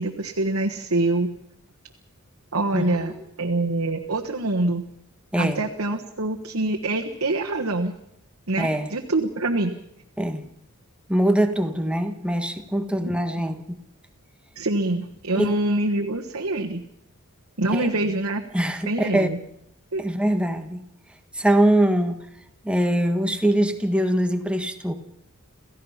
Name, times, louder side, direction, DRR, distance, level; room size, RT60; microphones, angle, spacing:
voice 1, 0.0-1.3 2.5-3.1 3.4-4.8 5.4-7.9 8.5-9.8 13.0-13.1 14.5-16.8 17.6-18.4 18.9-19.4 19.9-20.0, right 2 dB, 70° right, 1 dB, 1.5 m, -25 dB
voice 2, 2.7-3.1 5.3-5.6 8.6-8.9 10.2-10.4 11.1-13.8 15.3-15.5 17.7-17.9 18.5-19.3 20.0-20.8 21.3-22.2 22.6-24.9, right 1 dB, 5° right, 6 dB, 1.5 m, -22 dB
28.5 x 16.0 x 5.8 m, 0.77 s
head